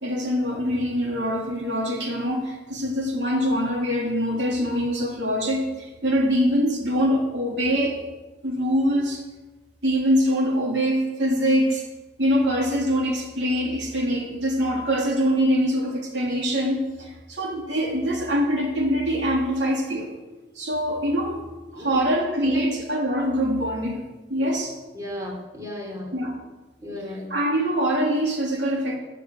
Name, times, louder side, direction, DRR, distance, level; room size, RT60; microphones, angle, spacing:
voice 1, 0.0-8.0 8.4-9.2 9.8-11.9 12.2-20.1 20.5-21.4 21.7-24.0 24.3-24.7 26.1-26.3 27.3-29.0, equal, 75° right, 0 dB, 3.1 m, -24 dB
voice 2, 21.7-22.0 22.4-22.7 24.9-26.1 26.8-27.3, left 1 dB, 20° right, -1 dB, 3.9 m, -34 dB
13.0 x 12.0 x 7.8 m, 1.2 s
head